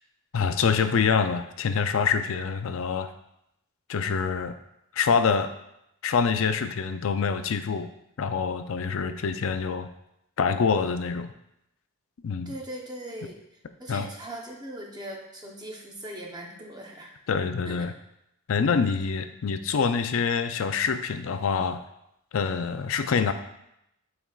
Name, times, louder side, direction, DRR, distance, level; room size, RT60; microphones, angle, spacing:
voice 1, 0.3-3.1 3.9-4.6 4.9-5.5 6.0-7.9 8.2-9.9 10.4-11.3 12.2-12.5 13.9-14.1 17.3-17.9 18.5-21.8 22.3-23.3, left 5 dB, 65° left, 9 dB, 0.4 m, -25 dB
voice 2, 12.5-17.2 17.7-17.8, right 1 dB, 20° right, 0 dB, 0.8 m, -40 dB
9.0 x 4.3 x 2.4 m, 0.81 s
head